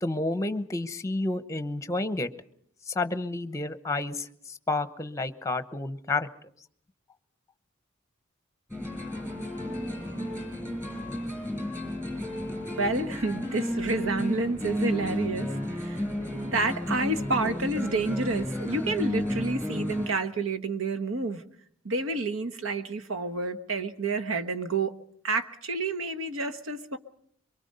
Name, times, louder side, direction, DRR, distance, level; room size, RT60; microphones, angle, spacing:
voice 1, 0.0-2.3 2.9-4.3 4.7-6.3, left 2 dB, 15° left, 11 dB, 0.9 m, -30 dB
sound 1, 8.7-20.1, left 1 dB, 15° right, 6.6 m, -32 dB
voice 2, 12.8-15.5 15.8-16.0 16.3-21.4 21.8-24.9 25.2-27.0, right 3 dB, 85° right, 9 dB, 1.3 m, -29 dB
23.5 x 23.5 x 5.5 m, 0.64 s
head